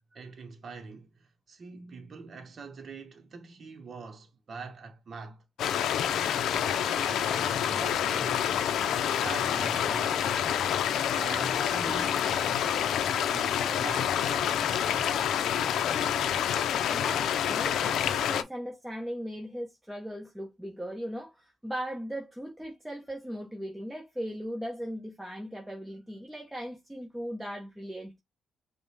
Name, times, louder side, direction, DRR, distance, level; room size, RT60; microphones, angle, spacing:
voice 1, 0.1-5.4 6.3-8.5 9.2-10.5 11.1-12.8 13.1-15.3, right 4 dB, 45° right, 0.9 m, -44 dB
sound 1, 5.6-18.4, left 9 dB, 75° left, 0.5 m, -27 dB
voice 2, 16.9-28.1, equal, 5° right, 1.0 m, -38 dB
5.2 x 2.2 x 3.3 m
cardioid pair, 90°, 0 cm